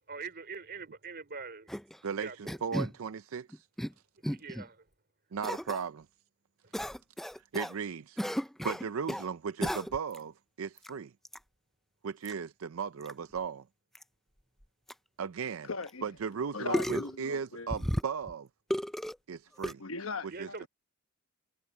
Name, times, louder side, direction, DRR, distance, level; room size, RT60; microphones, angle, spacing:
voice 1, 0.1-1.7 2.2-2.6 4.3-4.8 6.6-6.7 20.3-20.7, right 4 dB, 50° right, 3.3 m, -43 dB
sound 1, 1.7-2.0 2.5-2.9 3.5-3.9 4.2-4.6 5.4-5.8 6.7-7.7 8.2-9.3 9.6-10.2 10.8-10.9 11.2-11.4 12.2-12.3 13.0-13.1 13.4-13.5 13.9-14.0 14.6-14.7 14.9-15.0 15.8-15.9 16.7-17.2 17.7-18.3 18.7-19.2 19.6-19.7, equal, ahead, 0.4 m, -34 dB
voice 2, 2.0-3.6 5.3-6.1 7.5-8.2 8.6-11.1 12.0-13.6 15.2-15.7 16.0-18.5 19.3-19.8 20.4-20.7, right 6 dB, 75° right, 0.5 m, -36 dB
voice 3, 15.6-16.0 16.5-17.7 19.8-20.7, left 4 dB, 70° left, 1.1 m, -39 dB
head